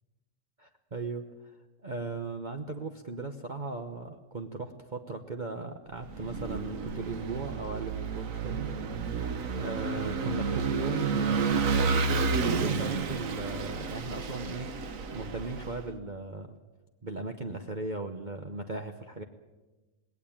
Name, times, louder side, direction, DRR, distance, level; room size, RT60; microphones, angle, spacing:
voice 1, 0.6-1.5 1.8-8.7 9.6-14.7 15.1-16.6 17.0-19.2, right 3 dB, 35° right, 5 dB, 1.1 m, -37 dB
Vehicle / Engine, 6.0-15.8, right 5 dB, 65° right, 1.6 m, -31 dB
19.5 x 18.0 x 8.8 m, 1.2 s
omnidirectional pair, 1.5 m